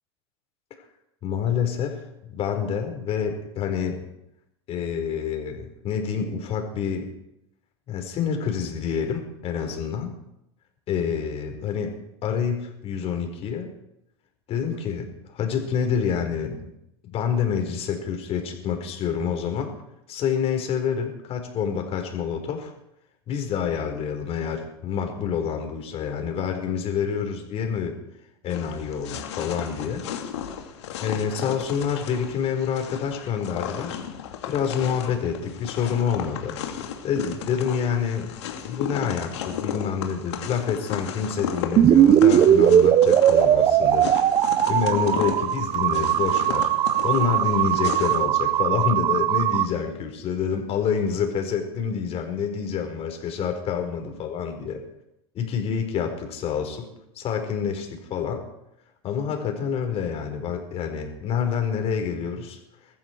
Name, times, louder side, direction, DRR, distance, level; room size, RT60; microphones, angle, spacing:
voice 1, 1.2-2.0 2.3-4.0 4.7-7.1 7.9-10.1 10.9-11.9 12.2-13.7 14.5-16.7 17.1-19.7 20.1-22.7 23.3-28.0 28.4-30.0 31.0-34.0 34.5-36.6 37.0-38.3 38.6-54.8 55.4-56.9 57.1-58.4 59.0-62.6, left 7 dB, 45° left, 4 dB, 4.7 m, -27 dB
sound 1, 28.5-48.2, left 8 dB, 80° left, 2.6 m, -35 dB
sound 2, 41.8-49.7, right 11 dB, 40° right, 0.8 m, -19 dB
21.0 x 14.5 x 4.7 m, 0.83 s
hypercardioid pair, 100°, 14 cm